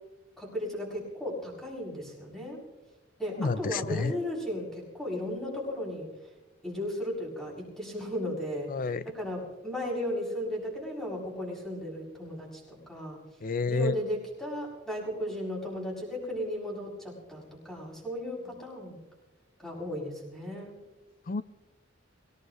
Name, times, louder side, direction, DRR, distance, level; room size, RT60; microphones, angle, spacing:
voice 1, 0.4-2.6 3.2-6.1 6.6-13.2 13.7-19.0 19.6-20.8, left 1 dB, ahead, -5 dB, 7.2 m, -35 dB
voice 2, 3.4-4.1 8.7-9.1 13.4-14.0 21.3-21.4, left 4 dB, 45° left, 16 dB, 0.5 m, -29 dB
24.5 x 19.0 x 3.1 m, 1.2 s
head